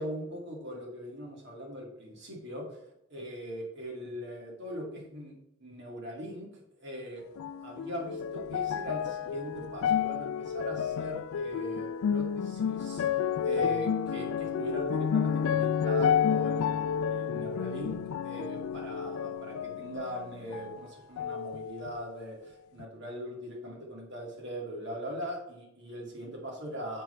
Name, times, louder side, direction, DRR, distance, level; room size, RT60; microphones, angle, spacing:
voice 1, 0.0-2.8 3.1-5.3 5.6-7.2 7.6-13.0 13.4-27.0, right 1 dB, 60° right, -1 dB, 2.3 m, -40 dB
sound 1, 7.4-20.8 21.2-22.1 22.8-22.9, left 7 dB, 80° left, 0.3 m, -31 dB
7.6 x 6.1 x 3.3 m, 0.80 s
head